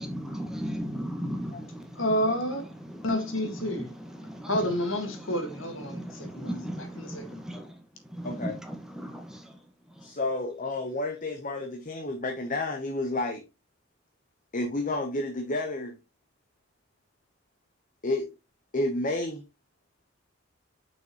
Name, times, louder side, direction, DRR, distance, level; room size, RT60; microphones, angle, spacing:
voice 1, 0.1-2.0 2.8-3.0 3.6-4.5 5.8-7.7 8.1-9.6, equal, 5° right, 1.5 m, -36 dB
voice 2, 2.0-2.6 3.0-3.9 4.5-7.4, equal, 70° left, 2.0 m, -30 dB
voice 3, 8.2-8.6 10.0-13.4 14.5-16.0 18.0-18.3 18.7-19.4, left 2 dB, 40° left, 1.0 m, -30 dB
6.8 x 6.1 x 3.1 m
head